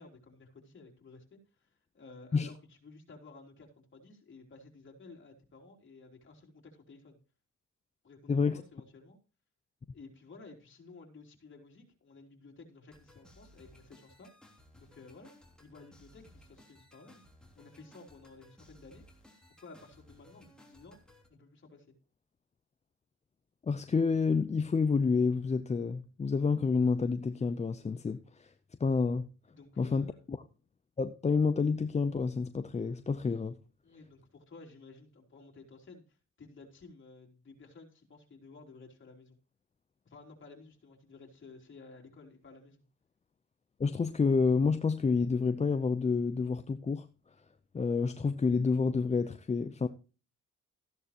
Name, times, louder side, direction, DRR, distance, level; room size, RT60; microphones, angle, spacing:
voice 1, 0.0-1.7 1.9-7.2 8.0-9.2 9.9-14.3 14.8-15.3 15.6-17.2 17.6-19.0 19.6-21.0 21.3-21.9 29.5-30.2 33.8-39.4 40.1-42.8, left 3 dB, 40° left, 3.6 m, -54 dB
voice 2, 8.3-8.6 23.6-28.5 28.8-29.3 29.8-30.4 31.0-33.6 43.8-47.1 47.7-49.9, left 4 dB, 20° left, 0.6 m, -29 dB
sound 1, 12.9-21.3, left 1 dB, 5° left, 3.2 m, -59 dB
14.0 x 10.5 x 2.9 m
cardioid pair, 90°, 30 cm